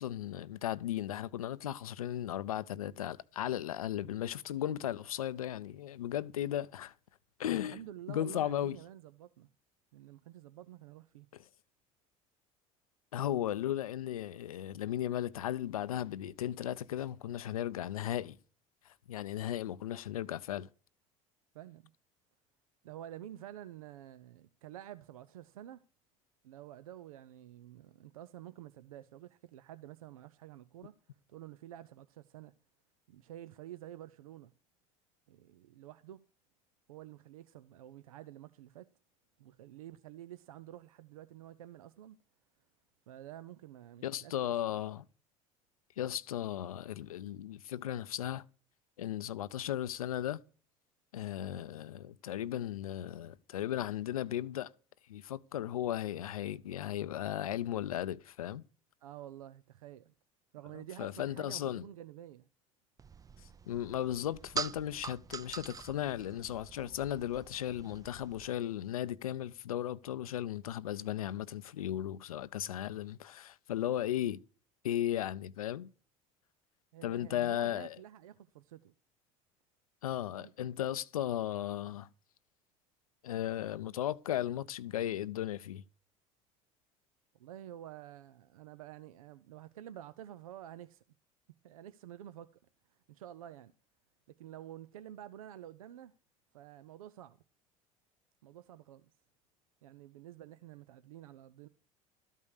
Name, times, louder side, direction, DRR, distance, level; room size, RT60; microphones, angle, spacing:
voice 1, 0.0-6.9 7.4-7.8 8.1-8.8 11.3-11.4 13.1-18.4 19.1-20.7 44.0-45.0 46.0-48.4 49.0-50.4 51.1-54.7 55.1-58.6 60.7-61.8 63.7-74.4 74.8-75.9 77.0-78.0 80.0-82.1 83.2-85.8, left 11 dB, 85° left, 0.5 m, -36 dB
voice 2, 7.7-9.5 9.9-11.3 21.5-21.9 22.8-25.8 26.4-31.0 31.3-32.5 33.1-34.5 35.3-36.2 36.9-38.9 39.4-42.2 43.1-44.5 59.0-60.1 60.5-62.5 76.9-78.9 80.4-80.9 87.4-91.0 91.6-92.6 92.9-93.7 94.3-96.1 96.5-97.4 98.4-99.1 99.8-101.7, right 12 dB, 85° right, 0.5 m, -50 dB
sound 1, 63.0-68.5, right 5 dB, 20° right, 0.4 m, -44 dB
12.5 x 5.5 x 6.4 m
hypercardioid pair, 70°, 18 cm